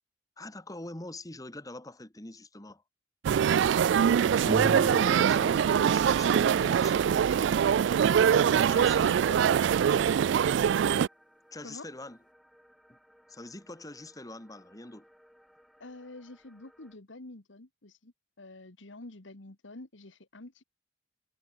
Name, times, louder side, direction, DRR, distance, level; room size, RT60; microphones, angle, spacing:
voice 1, 0.4-2.8 4.1-4.8 5.3-7.3 8.2-9.6 9.9-10.1 11.5-12.2 12.9-13.0 13.3-15.1, left 2 dB, 20° left, 1.8 m, -44 dB
sound 1, 3.2-11.1, right 8 dB, 70° right, 0.3 m, -23 dB
sound 2, 4.4-8.1, right 1 dB, 25° right, 0.9 m, -37 dB
sound 3, 5.4-17.0, equal, ahead, 5.4 m, -62 dB
voice 2, 8.1-9.5 11.6-11.9 15.8-20.6, left 2 dB, 85° left, 1.8 m, -48 dB
head